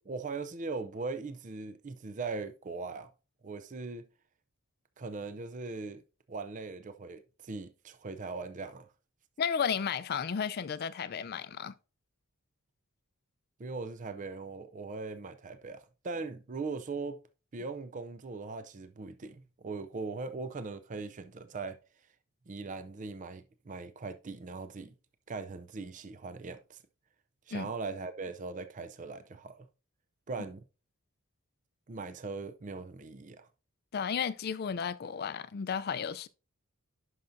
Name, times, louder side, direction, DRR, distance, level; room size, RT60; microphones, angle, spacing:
voice 1, 0.0-3.1 3.4-4.1 5.0-6.0 6.3-8.9 13.6-17.2 17.5-21.8 22.5-24.9 25.3-26.8 27.5-29.7 30.3-30.6 31.9-33.5, right 4 dB, 35° right, 0.4 m, -40 dB
voice 2, 9.4-11.8 27.5-27.7 33.9-36.3, left 7 dB, 45° left, 0.4 m, -33 dB
10.5 x 5.7 x 2.6 m
head